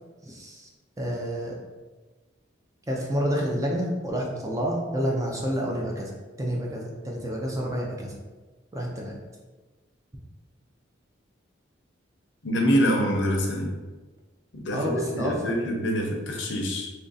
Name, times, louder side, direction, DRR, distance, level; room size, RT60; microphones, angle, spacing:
voice 1, 0.2-0.7 1.0-1.5 2.9-6.1 6.4-8.1 8.7-9.2 14.7-15.5, equal, 15° right, -2 dB, 0.5 m, -29 dB
voice 2, 12.4-13.7 14.5-16.9, equal, 70° left, 1 dB, 0.7 m, -25 dB
3.2 x 2.5 x 3.9 m, 1.3 s
head